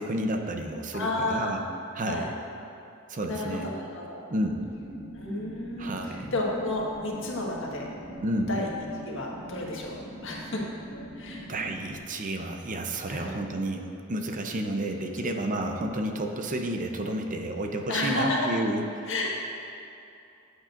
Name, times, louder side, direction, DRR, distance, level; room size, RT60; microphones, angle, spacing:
voice 1, 0.0-1.6 1.9-2.3 3.1-3.7 4.3-4.6 5.8-6.3 8.2-8.5 11.5-18.8, right 1 dB, 40° right, 4 dB, 0.6 m, -31 dB
voice 2, 0.9-1.5 2.0-2.3 3.3-4.3 5.1-7.9 8.5-8.7 9.0-9.9 10.2-10.6 11.1-11.5 13.1-13.3 15.2-15.4 17.9-18.5 19.1-19.4, left 2 dB, 65° left, -3 dB, 1.5 m, -31 dB
sound 1, 4.5-12.0, equal, 20° right, 1.2 m, -43 dB
13.5 x 8.1 x 2.5 m, 2.7 s
head